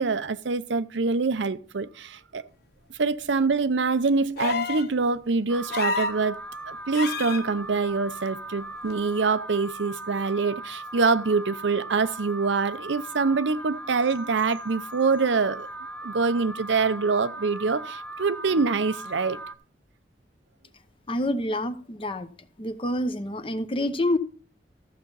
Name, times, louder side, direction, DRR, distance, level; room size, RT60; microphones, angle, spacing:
voice 1, 0.0-2.4 2.9-6.4 6.7-15.7 16.0-19.4, right 4 dB, 85° right, 0.6 m, -25 dB
sound 1, 4.4-4.9 5.7-6.2 6.9-7.4 8.9-9.0, left 4 dB, 60° left, 0.7 m, -28 dB
Alarm, 5.5-19.6, right 1 dB, 10° left, 0.5 m, -39 dB
voice 2, 21.1-22.3 22.6-24.2, left 1 dB, 30° left, 0.8 m, -27 dB
14.0 x 7.0 x 3.9 m
head